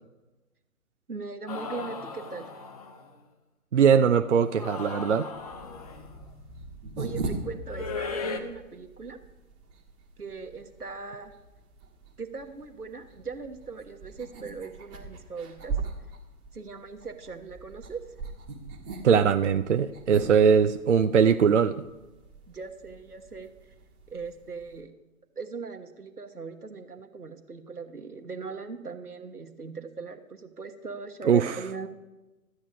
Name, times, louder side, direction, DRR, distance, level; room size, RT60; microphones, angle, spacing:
voice 1, 1.1-2.5 7.0-9.2 10.2-11.3 12.2-15.8 16.5-18.0 22.5-23.5 24.1-24.9 25.4-31.9, right 4 dB, 85° right, 5 dB, 1.4 m, -39 dB
sound 1, 1.5-3.1 4.4-6.2 7.7-8.4, left 5 dB, 25° left, 0.8 m, -37 dB
voice 2, 3.7-5.3 19.0-21.8 31.2-31.6, right 7 dB, 55° right, 8 dB, 0.6 m, -21 dB
sound 2, 5.3-24.8, right 3 dB, 20° right, 1.3 m, -41 dB
13.0 x 8.5 x 5.1 m, 1.1 s
figure-of-eight pair, 130°, 44 cm